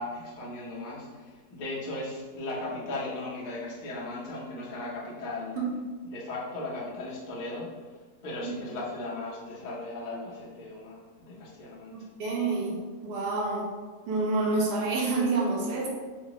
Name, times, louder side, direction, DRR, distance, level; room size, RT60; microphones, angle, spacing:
voice 1, 0.0-5.6 6.0-7.9 8.2-12.1, left 2 dB, 45° left, -5 dB, 0.6 m, -37 dB
voice 2, 11.9-12.8 13.0-13.7 14.1-15.9, right 3 dB, 75° right, -2 dB, 1.3 m, -28 dB
3.8 x 2.4 x 2.9 m, 1.4 s
omnidirectional pair, 1.8 m